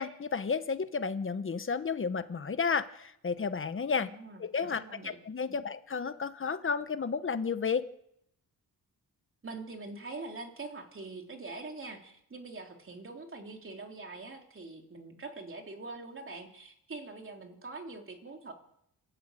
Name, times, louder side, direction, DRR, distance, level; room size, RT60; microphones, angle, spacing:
voice 1, 0.0-4.1 4.4-7.9, left 5 dB, 30° left, 11 dB, 1.1 m, -32 dB
voice 2, 4.0-5.2 5.5-5.6 9.4-18.5, right 3 dB, 35° right, 3 dB, 3.5 m, -44 dB
29.0 x 12.5 x 9.2 m, 0.77 s
wide cardioid pair, 155°, 38 cm